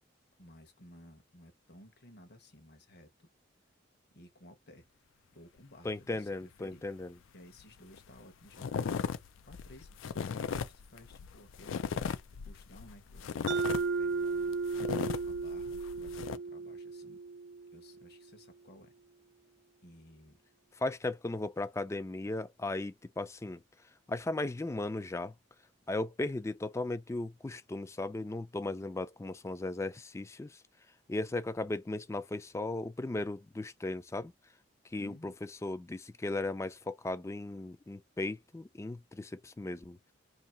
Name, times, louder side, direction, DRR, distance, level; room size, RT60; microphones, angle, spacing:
voice 1, 0.4-3.3 4.1-4.9 5.3-6.8 7.3-9.1 9.4-11.9 12.4-14.6 14.8-17.2 17.7-18.9 19.8-20.4 35.0-35.4, left 1 dB, 55° left, 1.0 m, -56 dB
voice 2, 5.8-7.1 20.8-23.6 24.1-25.3 25.9-30.6 31.1-34.3 34.9-35.3 35.6-40.1, left 2 dB, 15° left, 0.3 m, -36 dB
sound 1, 7.6-7.7 7.9-8.2 8.5-16.4, left 6 dB, 90° left, 0.4 m, -37 dB
Mallet percussion, 13.5-18.0, right 4 dB, 80° right, 0.3 m, -35 dB
2.8 x 2.7 x 4.2 m
head